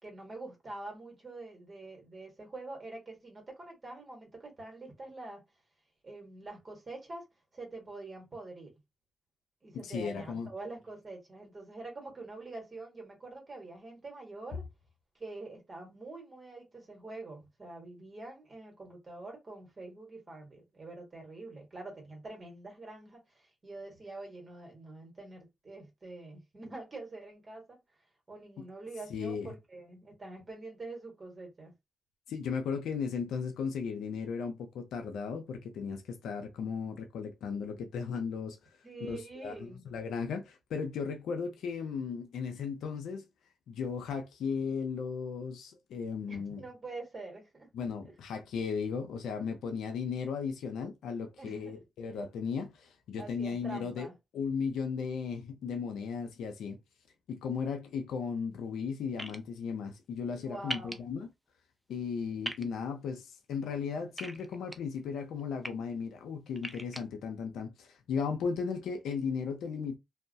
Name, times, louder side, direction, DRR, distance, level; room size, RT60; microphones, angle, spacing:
voice 1, 0.0-5.4 6.0-7.2 7.5-8.7 9.6-14.6 15.1-27.8 28.3-31.7 38.8-39.8 46.3-47.9 51.4-51.8 53.2-54.1 60.3-61.0, right 2 dB, 40° right, 1.2 m, -45 dB
voice 2, 9.7-10.5 29.1-29.5 32.3-38.6 39.0-43.2 43.7-46.6 47.7-54.1 54.3-56.8 57.3-61.3 61.9-70.0, left 6 dB, 85° left, 0.5 m, -36 dB
sound 1, 59.2-59.4 60.7-60.9 62.4-62.6 64.2-64.8 65.4-65.7 66.6-67.0, equal, 5° right, 0.4 m, -37 dB
2.3 x 2.1 x 2.6 m
cardioid pair, 60°, 0 cm